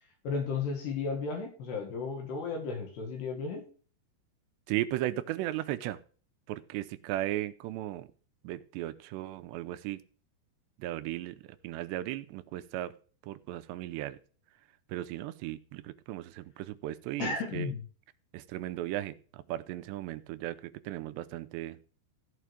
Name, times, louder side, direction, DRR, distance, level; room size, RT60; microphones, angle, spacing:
voice 1, 0.2-3.6 17.2-17.8, left 4 dB, 70° left, 3 dB, 4.0 m, -34 dB
voice 2, 4.7-6.0 6.5-8.1 8.4-10.0 10.8-11.4 11.6-12.9 13.2-14.2 14.9-17.7 18.3-21.8, right 14 dB, 85° right, 11 dB, 2.8 m, -36 dB
14.5 x 5.1 x 4.9 m, 0.40 s
omnidirectional pair, 5.0 m